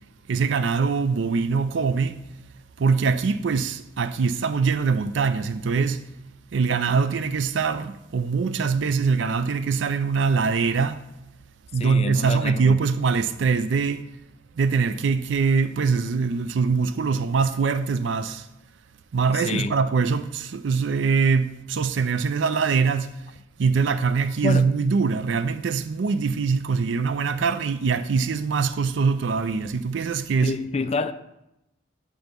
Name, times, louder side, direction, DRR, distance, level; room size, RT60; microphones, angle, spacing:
voice 1, 0.3-2.2 2.8-6.1 6.5-11.0 11.7-14.0 14.6-18.5 19.1-23.2 23.6-30.6, right 5 dB, 70° right, 0.4 m, -23 dB
voice 2, 11.8-12.8 19.3-19.8 24.4-24.7 30.4-31.1, left 3 dB, 30° left, 0.3 m, -27 dB
9.0 x 3.4 x 5.2 m
head